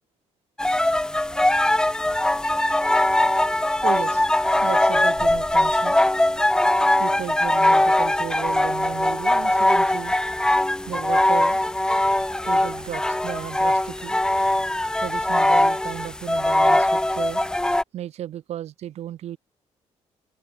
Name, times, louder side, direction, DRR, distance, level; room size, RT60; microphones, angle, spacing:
sound 1, 0.6-17.8, left 1 dB, 5° left, 0.8 m, -21 dB
voice 1, 3.8-4.3 4.6-6.0 7.0-10.2 10.9-11.6 12.4-14.2 15.0-17.4 17.9-19.4, right 12 dB, 70° right, 7.9 m, -34 dB
open air
cardioid pair, 120°, 11 cm